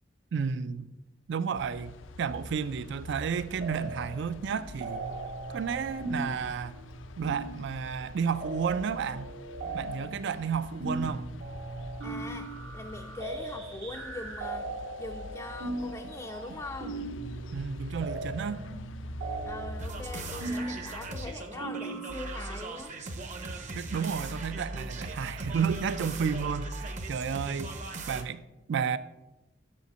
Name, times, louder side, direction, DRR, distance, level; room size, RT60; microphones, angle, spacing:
voice 1, 0.3-0.9 1.3-5.0 5.5-6.8 7.2-9.3 9.7-11.3 17.5-18.7 23.7-27.8 28.1-28.4 28.7-29.0, right 6 dB, 65° right, 0.4 m, -32 dB
sound 1, 1.5-21.3, left 2 dB, 80° left, 0.5 m, -45 dB
sound 2, 3.6-4.2 4.5-22.8, right 2 dB, 85° right, 1.6 m, -39 dB
voice 2, 12.0-14.7 15.0-17.0 19.4-22.9, left 2 dB, 15° left, 0.4 m, -42 dB
sound 3, 19.8-28.2, right 2 dB, 40° right, 0.7 m, -39 dB
6.8 x 5.3 x 6.7 m
head